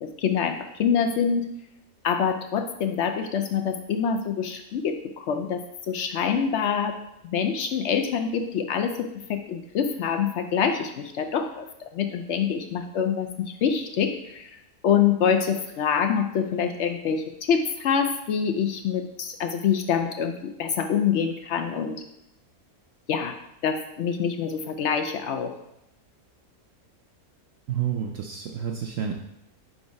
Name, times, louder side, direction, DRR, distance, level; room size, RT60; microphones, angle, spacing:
voice 1, 0.0-1.5 2.0-7.0 7.2-14.5 14.8-22.0 23.1-23.3 23.6-25.5, left 7 dB, 70° left, 6 dB, 0.7 m, -26 dB
voice 2, 27.7-29.1, right 8 dB, 70° right, 1 dB, 0.8 m, -29 dB
4.7 x 3.9 x 5.2 m, 0.84 s
omnidirectional pair, 1.6 m